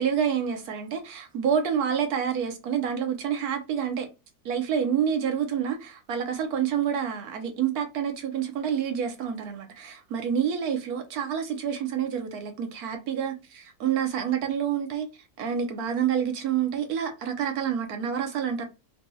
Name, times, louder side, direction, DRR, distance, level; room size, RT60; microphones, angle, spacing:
voice 1, 0.0-4.1 4.4-18.6, right 8 dB, 85° right, 1.2 m, -28 dB
4.0 x 2.3 x 2.7 m
omnidirectional pair, 1.6 m